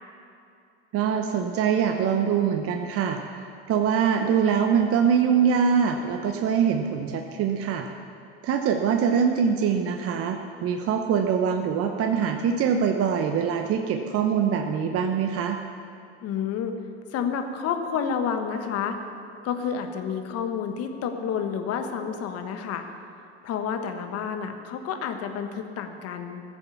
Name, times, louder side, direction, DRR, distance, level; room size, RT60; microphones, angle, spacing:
voice 1, 0.9-7.9 8.4-15.6, right 7 dB, 45° right, 4 dB, 0.9 m, -23 dB
voice 2, 16.2-16.7 17.1-19.0 19.4-22.8 23.4-26.4, left 7 dB, 50° left, 6 dB, 1.4 m, -29 dB
15.0 x 7.1 x 7.0 m, 2.5 s
hypercardioid pair, 85°, 32 cm